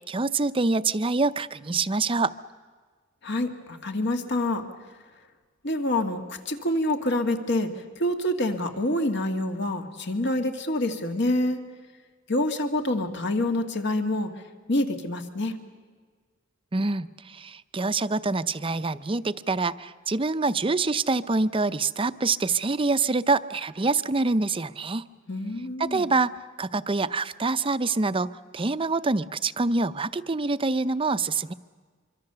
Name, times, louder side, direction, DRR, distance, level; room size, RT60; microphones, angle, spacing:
voice 1, 0.1-2.3 16.7-25.0 25.8-26.3 26.6-31.5, right 3 dB, 25° right, 12 dB, 0.6 m, -26 dB
voice 2, 3.2-4.6 5.6-11.6 12.3-14.3 14.7-15.6 25.3-26.1, left 1 dB, 60° left, 6 dB, 2.0 m, -27 dB
25.0 x 24.5 x 6.8 m, 1.5 s
head